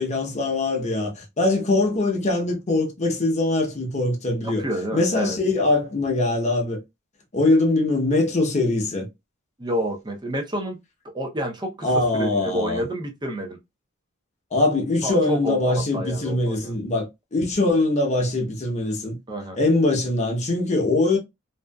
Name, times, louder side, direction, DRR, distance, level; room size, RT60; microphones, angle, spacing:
voice 1, 0.0-4.7 4.9-6.8 7.3-9.1 11.8-12.8 14.5-19.2 19.5-21.2, left 2 dB, 35° left, 0.8 m, -22 dB
voice 2, 4.6-5.4 9.6-10.8 11.1-11.9 12.2-13.6 15.0-16.8 19.3-19.6, equal, 20° right, 0.6 m, -29 dB
2.6 x 2.4 x 2.2 m
head